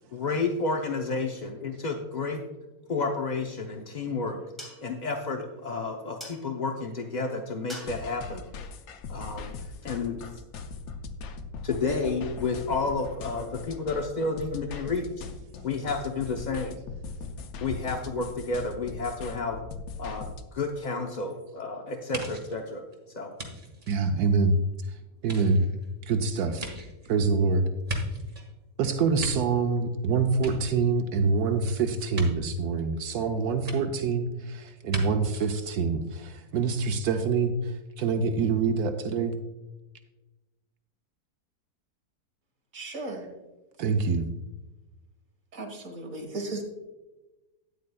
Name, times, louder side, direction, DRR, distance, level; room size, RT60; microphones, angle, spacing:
voice 1, 0.1-2.4 2.9-4.4 4.8-8.4 9.1-10.2 11.6-15.1 15.6-16.8 17.6-19.6 20.0-20.2 20.5-22.8 23.1-23.3, left 3 dB, 45° left, 2 dB, 0.5 m, -31 dB
sound 1, 3.5-9.8, equal, ahead, 2.4 m, -50 dB
sound 2, 7.7-20.4, left 4 dB, 70° left, 1.1 m, -40 dB
sound 3, 22.1-24.7 25.2-28.5 28.9-30.0 30.3-31.2 32.1-32.3 33.7-33.8 34.9-35.0 35.3-35.5, equal, 30° right, 1.7 m, -38 dB
voice 2, 23.9-24.6 25.2-25.6 26.0-26.7 27.1-27.7 28.8-39.4 43.8-44.3, right 4 dB, 80° right, 6 dB, 1.1 m, -26 dB
voice 3, 42.7-43.3 45.5-46.6, right 2 dB, 55° right, 2 dB, 2.0 m, -36 dB
13.0 x 9.5 x 2.3 m, 1.1 s
omnidirectional pair, 1.7 m